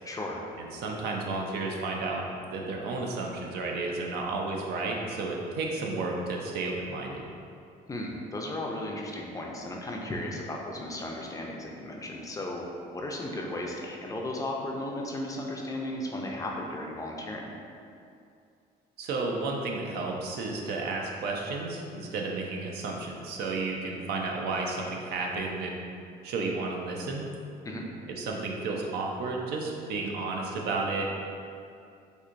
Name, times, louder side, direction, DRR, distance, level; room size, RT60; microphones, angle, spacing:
voice 1, 0.0-0.4 7.9-17.5 27.6-27.9, left 1 dB, 20° left, -1 dB, 0.4 m, -35 dB
voice 2, 0.6-2.2 2.5-7.2 19.0-25.8 26.2-27.3 28.2-31.2, right 3 dB, 70° right, 0 dB, 0.5 m, -32 dB
4.3 x 2.6 x 2.5 m, 2.5 s
cardioid pair, 110°, 17 cm